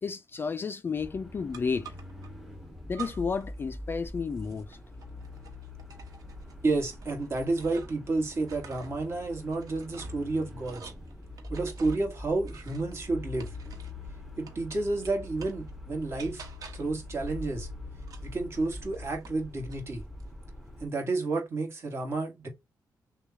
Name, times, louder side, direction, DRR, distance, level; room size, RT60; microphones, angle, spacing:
voice 1, 0.0-1.9 2.9-4.8, left 5 dB, 30° left, 0.3 m, -32 dB
sound 1, 1.0-20.9, left 1 dB, 5° right, 0.8 m, -44 dB
sound 2, 1.5-2.3 2.9-3.5 3.8-8.1 8.4-14.1 14.5-15.7 16.2-17.0 18.0-19.4 19.7-20.3, right 4 dB, 55° right, 1.3 m, -48 dB
voice 2, 6.6-10.9 11.5-13.5 14.4-16.4 16.7-17.7 18.2-20.0 20.8-22.5, right 3 dB, 35° right, 1.6 m, -31 dB
6.2 x 2.3 x 2.7 m
wide cardioid pair, 160°, 7 cm